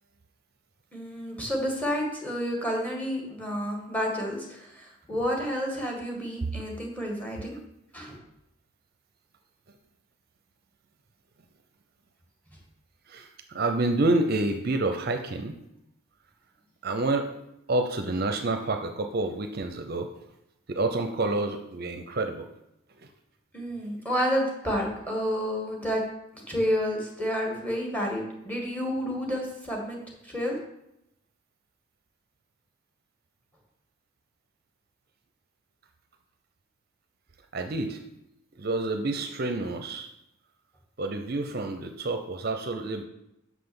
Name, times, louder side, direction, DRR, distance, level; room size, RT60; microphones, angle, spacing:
voice 1, 0.9-7.6 7.9-8.2 23.5-26.0 26.3-30.0 30.2-30.6, equal, 5° left, -1 dB, 1.7 m, -30 dB
voice 2, 13.1-15.6 16.8-17.4 17.7-20.1 20.7-22.5 37.5-38.0 38.6-40.1 41.0-43.1, right 2 dB, 45° right, 6 dB, 0.6 m, -28 dB
6.1 x 5.9 x 7.0 m, 0.84 s
head